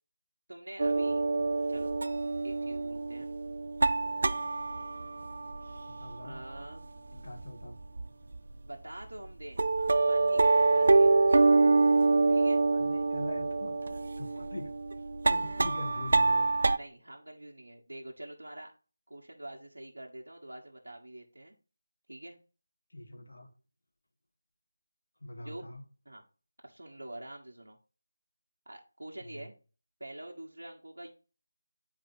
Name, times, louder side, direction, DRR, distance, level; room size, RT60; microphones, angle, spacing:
voice 1, 0.5-1.2 1.7-1.9 2.4-3.3 6.2-6.9 8.6-11.2 12.3-12.6 15.4-15.6 16.7-18.7 19.1-21.5 22.1-22.4 25.4-25.6 26.0-26.2 26.6-27.8 28.6-29.5 30.0-31.1, right 1 dB, 85° right, -1 dB, 1.3 m, -46 dB
sound 1, 0.8-6.8 7.1-8.1 8.3-8.5 9.0-9.1 9.6-16.8, right 3 dB, 55° right, 0.4 m, -26 dB
voice 2, 5.9-6.4 7.1-7.8 12.7-14.7 15.3-16.5 22.9-23.5 25.2-25.8 29.2-29.5, left 1 dB, 70° left, 4 dB, 1.9 m, -43 dB
9.4 x 4.7 x 2.8 m, 0.36 s
figure-of-eight pair, 165°, 0 cm